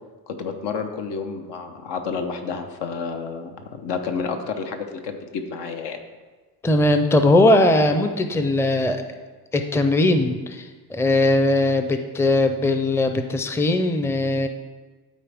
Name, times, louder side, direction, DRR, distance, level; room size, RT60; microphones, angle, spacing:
voice 1, 0.3-6.0, left 5 dB, 80° left, 5 dB, 1.0 m, -30 dB
voice 2, 6.6-9.0 9.5-14.5, left 2 dB, 5° left, 7 dB, 0.5 m, -19 dB
12.5 x 4.3 x 3.5 m, 1.3 s
cardioid pair, 100°, 41 cm